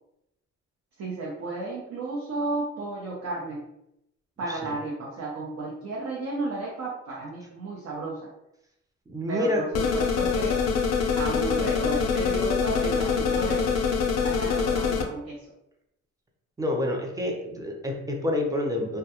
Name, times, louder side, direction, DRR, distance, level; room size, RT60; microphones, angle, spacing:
voice 1, 1.0-3.6 4.4-8.3 9.3-10.6 11.2-13.6 14.2-15.5, right 2 dB, 60° right, -5 dB, 0.7 m, -33 dB
voice 2, 9.1-9.6 16.6-19.0, left 1 dB, 10° right, 0 dB, 0.6 m, -28 dB
sound 1, 9.7-15.0, left 5 dB, 60° left, 0.5 m, -25 dB
2.3 x 2.2 x 2.8 m, 0.84 s
cardioid pair, 90°, 30 cm